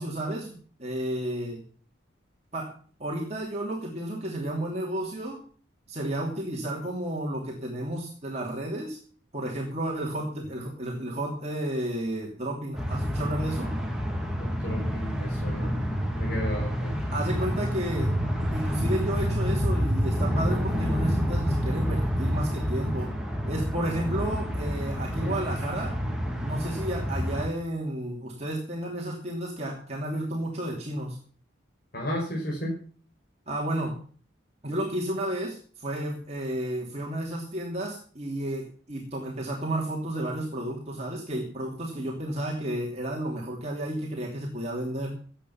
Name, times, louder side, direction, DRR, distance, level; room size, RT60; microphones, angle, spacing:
voice 1, 0.0-1.6 2.5-2.7 3.0-5.4 5.9-9.0 9.3-13.7 17.1-18.1 18.4-23.1 23.5-25.9 26.4-31.2 33.5-33.9 34.6-45.2, right 1 dB, 35° right, -2 dB, 2.9 m, -32 dB
sound 1, 12.7-27.5, equal, 5° right, 2.4 m, -28 dB
voice 2, 14.4-15.7 16.2-16.9 25.2-25.3 31.9-32.7, equal, 50° left, -3 dB, 5.3 m, -33 dB
16.0 x 9.2 x 5.8 m, 0.43 s
head